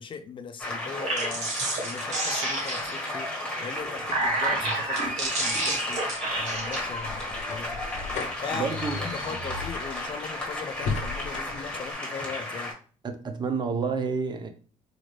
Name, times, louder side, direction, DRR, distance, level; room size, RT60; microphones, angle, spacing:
voice 1, 0.0-3.3 3.6-7.8 8.2-12.8, left 6 dB, 40° left, 0.4 m, -39 dB
sound 1, 0.6-12.7, left 1 dB, 5° left, 1.5 m, -34 dB
sound 2, 0.9-3.1 3.8-6.8, right 2 dB, 60° right, 1.6 m, -29 dB
sound 3, 5.4-11.9, left 4 dB, 60° left, 0.8 m, -37 dB
voice 2, 8.5-9.0 13.0-14.5, right 5 dB, 35° right, 0.7 m, -29 dB
4.2 x 2.5 x 3.3 m
cardioid pair, 100°, 14 cm